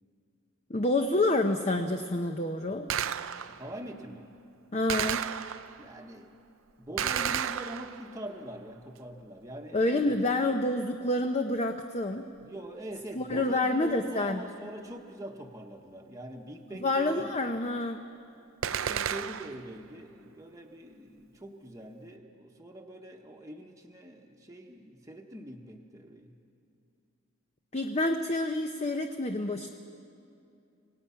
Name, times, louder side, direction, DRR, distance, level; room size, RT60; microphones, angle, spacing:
voice 1, 0.7-2.9 4.7-5.3 9.7-12.3 13.2-14.4 16.8-18.1 27.7-29.7, left 2 dB, 30° left, 6 dB, 0.6 m, -28 dB
Gunshot gunfire, 2.9-3.7 4.9-5.9 7.0-8.2 18.6-19.7, right 8 dB, 70° right, 0.5 m, -32 dB
voice 2, 3.3-4.3 5.8-6.3 6.8-10.1 12.4-17.6 18.7-26.4, right 1 dB, 15° right, 1 dB, 1.1 m, -43 dB
26.5 x 18.0 x 5.7 m, 2.6 s
head